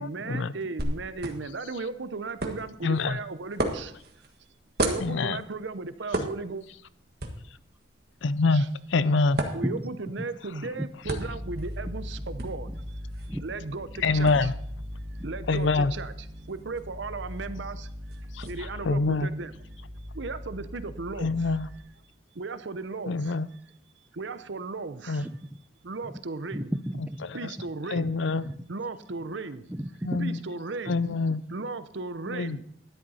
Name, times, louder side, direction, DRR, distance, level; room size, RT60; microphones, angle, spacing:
voice 1, 0.0-3.9 4.8-6.6 8.5-8.7 9.5-14.5 15.2-19.8 20.1-21.6 22.3-23.6 24.1-25.3 25.8-26.7 27.3-28.1 28.7-29.7 30.2-31.0 31.5-32.6, right 3 dB, 70° right, 12 dB, 0.7 m, -36 dB
sound 1, 0.8-18.5, right 1 dB, 55° right, 1.6 m, -38 dB
voice 2, 2.8-3.2 5.0-5.4 8.2-9.4 14.0-14.5 15.5-15.9 18.3-18.5 18.9-19.3 21.2-21.7 23.1-23.5 25.1-25.3 27.4-27.5 27.9-28.5 30.0-30.4 30.9-31.4 32.3-32.6, left 3 dB, 75° left, 16 dB, 0.5 m, -25 dB
sound 2, 11.0-21.8, equal, 30° right, 2.7 m, -40 dB
voice 3, 25.1-25.6 26.0-26.2 26.5-27.3 27.9-28.0 28.4-28.6 29.7-30.3, equal, 10° right, 10 dB, 0.5 m, -34 dB
12.5 x 10.5 x 4.2 m, 0.67 s
head